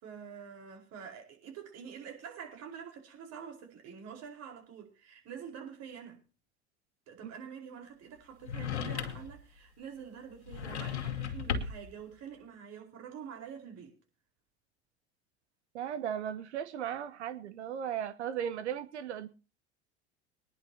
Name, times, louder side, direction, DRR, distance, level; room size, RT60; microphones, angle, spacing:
voice 1, 0.0-6.2 7.1-13.9, right 7 dB, 50° right, 4.6 m, -46 dB
sound 1, 8.4-9.4 10.5-11.9, left 7 dB, 85° left, 2.3 m, -35 dB
voice 2, 15.7-19.3, right 9 dB, 80° right, 1.0 m, -36 dB
22.5 x 10.5 x 2.8 m
hypercardioid pair, 85°, 33 cm